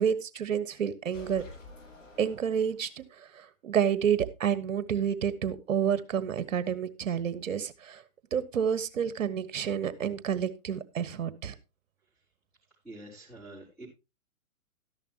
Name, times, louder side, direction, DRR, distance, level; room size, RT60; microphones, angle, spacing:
voice 1, 0.0-1.4 2.2-8.0 8.3-11.5, right 8 dB, 65° right, 15 dB, 1.5 m, -29 dB
sound 1, 1.1-3.1, left 1 dB, 60° left, 7.0 m, -49 dB
voice 2, 12.8-13.9, right 1 dB, ahead, -11 dB, 4.4 m, -46 dB
13.0 x 10.5 x 2.9 m, 0.27 s
figure-of-eight pair, 120°, 43 cm